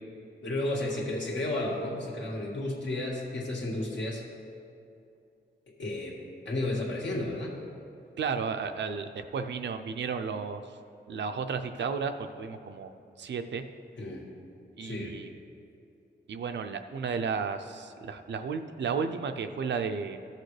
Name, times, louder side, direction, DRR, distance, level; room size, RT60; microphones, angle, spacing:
voice 1, 0.4-4.2 5.8-6.2 6.5-7.6 14.0-14.2 14.8-15.2, left 1 dB, 85° left, -3 dB, 1.8 m, -32 dB
voice 2, 8.2-10.6 11.1-12.9 13.2-13.6 14.8-15.3 16.3-20.2, right 5 dB, 75° right, 7 dB, 0.5 m, -33 dB
14.5 x 6.6 x 3.3 m, 2.5 s
wide cardioid pair, 135°, 18 cm